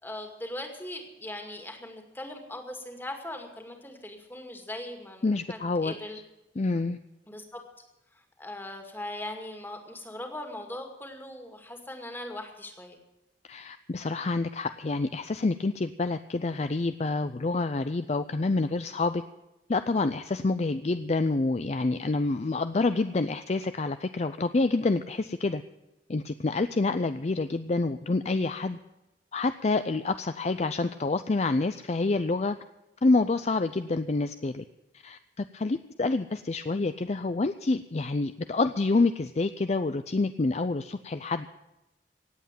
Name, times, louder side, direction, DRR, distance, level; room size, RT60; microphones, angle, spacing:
voice 1, 0.0-6.2 7.3-7.6 8.1-13.0, left 1 dB, 10° left, 4 dB, 2.2 m, -40 dB
voice 2, 5.2-5.9 6.6-7.0 13.5-19.2 19.7-25.6 26.1-28.8 29.3-32.6 33.0-34.6 35.0-41.5, left 3 dB, 40° left, 11 dB, 0.5 m, -27 dB
18.0 x 8.1 x 9.0 m, 0.96 s
head